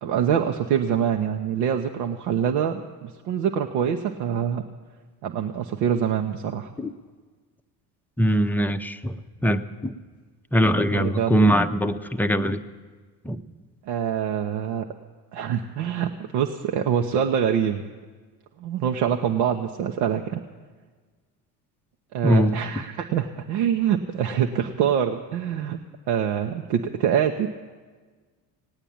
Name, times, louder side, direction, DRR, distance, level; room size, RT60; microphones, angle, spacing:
voice 1, 0.0-4.6 5.2-6.7 10.9-11.4 13.8-14.8 15.3-17.8 18.6-20.4 22.1-25.8 26.1-27.5, right 8 dB, 75° right, 4 dB, 1.0 m, -25 dB
voice 2, 8.2-10.0 10.5-12.6 13.2-13.4 22.2-22.6, equal, 5° left, 7 dB, 0.6 m, -22 dB
18.0 x 9.0 x 8.6 m, 1.4 s
hypercardioid pair, 75°, 49 cm